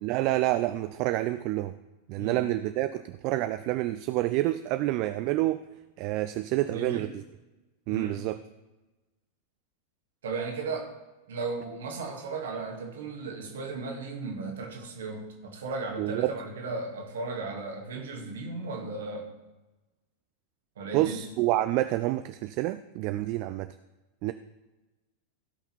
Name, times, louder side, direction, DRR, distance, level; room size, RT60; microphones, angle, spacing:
voice 1, 0.0-1.7 2.1-5.6 6.0-7.2 7.9-8.4 16.0-16.3 20.9-23.7 24.2-24.3, right 16 dB, 45° right, 12 dB, 0.4 m, -28 dB
voice 2, 6.7-7.1 7.9-8.2 10.2-10.9 11.3-19.3 20.8-21.2, right 3 dB, 60° right, 2 dB, 1.9 m, -35 dB
16.0 x 5.8 x 4.4 m, 1.1 s
figure-of-eight pair, 90°, 0 cm